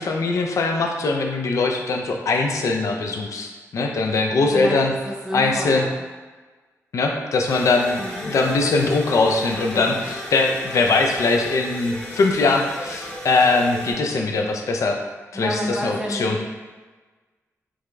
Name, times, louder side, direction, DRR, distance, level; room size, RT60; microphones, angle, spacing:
voice 1, 0.0-4.9 5.3-5.8 6.9-15.0 15.3-16.4, left 3 dB, 70° left, 2 dB, 0.4 m, -21 dB
voice 2, 5.0-5.9 8.0-8.3 9.7-10.0 15.3-16.4, equal, 15° right, -2 dB, 0.6 m, -30 dB
sound 1, 7.5-13.9, left 1 dB, 20° left, 0.8 m, -35 dB
4.7 x 2.5 x 2.2 m, 1.3 s
wide cardioid pair, 110°, 6 cm